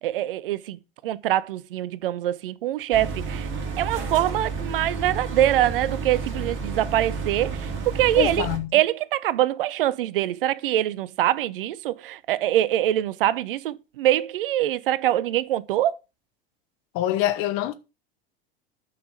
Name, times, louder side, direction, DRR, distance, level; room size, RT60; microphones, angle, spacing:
voice 1, 0.0-3.5 3.8-8.5 8.7-15.9, right 13 dB, 65° right, 0.7 m, -24 dB
sound 1, 2.9-8.6, right 4 dB, 40° right, 2.7 m, -31 dB
voice 2, 8.2-8.7 16.9-17.7, left 13 dB, 50° left, 1.2 m, -25 dB
9.4 x 5.8 x 5.1 m
figure-of-eight pair, 80°, 29 cm